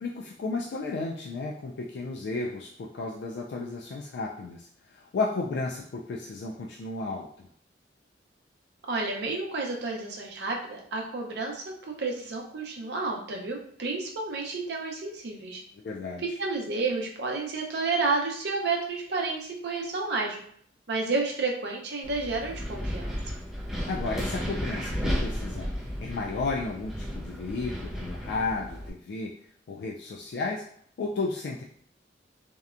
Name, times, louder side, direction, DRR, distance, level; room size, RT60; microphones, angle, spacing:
voice 1, 0.0-7.5 15.7-16.2 23.9-29.3 29.7-30.6 31.0-31.6, left 3 dB, 65° left, -2 dB, 0.3 m, -33 dB
voice 2, 8.9-15.6 16.2-20.4 20.9-23.1, right 3 dB, 65° right, 0 dB, 0.6 m, -31 dB
Wind, 22.0-28.9, equal, 5° right, 0.4 m, -33 dB
2.8 x 2.1 x 2.4 m, 0.63 s
head